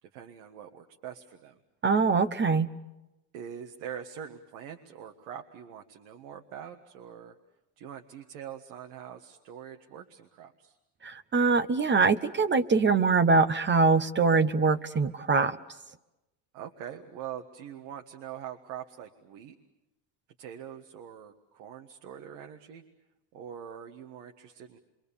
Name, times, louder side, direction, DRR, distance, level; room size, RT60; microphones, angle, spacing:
voice 1, 0.0-1.6 3.3-7.3 7.8-10.8 16.5-19.6 20.4-22.8 23.3-24.8, right 9 dB, 75° right, 4 dB, 1.7 m, -43 dB
voice 2, 1.8-2.7 11.0-15.6, right 4 dB, 25° right, 12 dB, 0.9 m, -23 dB
27.5 x 24.0 x 7.0 m, 0.97 s
supercardioid pair, 105°, 47 cm